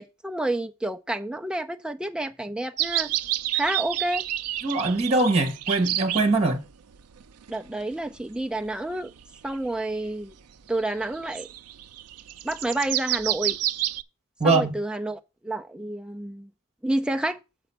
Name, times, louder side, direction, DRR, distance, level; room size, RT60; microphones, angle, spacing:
voice 1, 0.0-3.1 3.5-4.2 7.5-9.1 9.4-10.4 10.7-11.5 12.4-13.6 14.4-16.5 16.8-17.4, right 1 dB, 5° right, 0.5 m, -29 dB
sound 1, 2.8-6.3 6.9-8.2 8.7-9.7 10.1-10.2 10.9-14.0, right 13 dB, 85° right, 0.4 m, -29 dB
voice 2, 4.6-6.6 14.4-14.7, right 3 dB, 30° right, 1.4 m, -22 dB
7.0 x 5.2 x 5.6 m
head